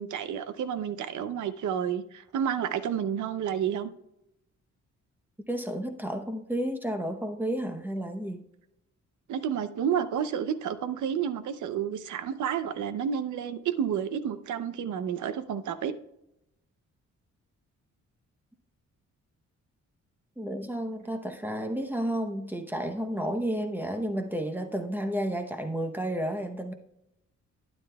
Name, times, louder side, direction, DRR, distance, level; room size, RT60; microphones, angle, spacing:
voice 1, 0.0-3.9 9.3-15.9, right 8 dB, 90° right, 13 dB, 0.7 m, -30 dB
voice 2, 5.5-8.4 20.4-26.7, right 1 dB, 5° right, 6 dB, 0.8 m, -31 dB
12.0 x 9.7 x 2.3 m, 0.83 s
cardioid pair, 130°, 29 cm